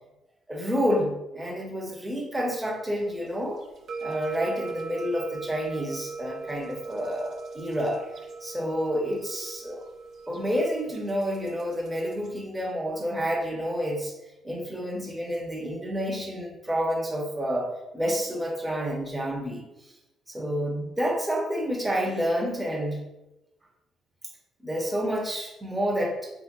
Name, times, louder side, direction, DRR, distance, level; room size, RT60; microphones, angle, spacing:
voice 1, 0.5-3.6 4.0-8.0 8.4-9.8 10.3-14.1 14.4-19.7 20.3-23.0 24.6-26.3, equal, 10° right, -2 dB, 0.8 m, -29 dB
sound 1, 3.0-12.3, right 4 dB, 60° right, 0.7 m, -39 dB
3.3 x 2.9 x 2.5 m, 0.94 s
cardioid pair, 90°, 0 cm